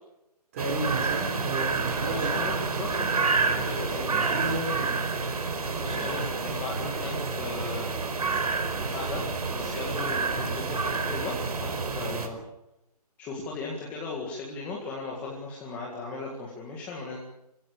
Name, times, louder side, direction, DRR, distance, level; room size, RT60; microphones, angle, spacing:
voice 1, 0.5-2.5 4.0-5.1, right 2 dB, 20° right, 4 dB, 4.4 m, -32 dB
sound 1, 0.6-12.3, right 4 dB, 65° right, 5.0 m, -29 dB
voice 2, 2.0-4.6 5.8-7.9 8.7-12.4 13.2-17.2, left 3 dB, 5° left, -3 dB, 2.0 m, -37 dB
27.0 x 17.0 x 8.4 m, 0.88 s
hypercardioid pair, 180°, 21 cm